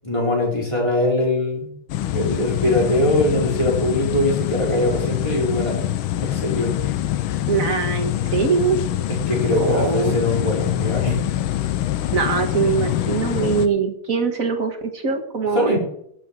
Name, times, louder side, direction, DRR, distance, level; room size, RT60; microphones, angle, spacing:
voice 1, 0.0-1.7 2.1-6.7 9.1-11.2 15.5-15.8, left 1 dB, 15° left, -3 dB, 4.6 m, -22 dB
sound 1, 1.9-13.7, left 13 dB, 75° left, 1.5 m, -25 dB
voice 2, 7.5-8.8 9.6-10.2 12.1-15.8, right 5 dB, 45° right, 3 dB, 1.7 m, -22 dB
12.0 x 7.5 x 7.7 m, 0.73 s
omnidirectional pair, 2.3 m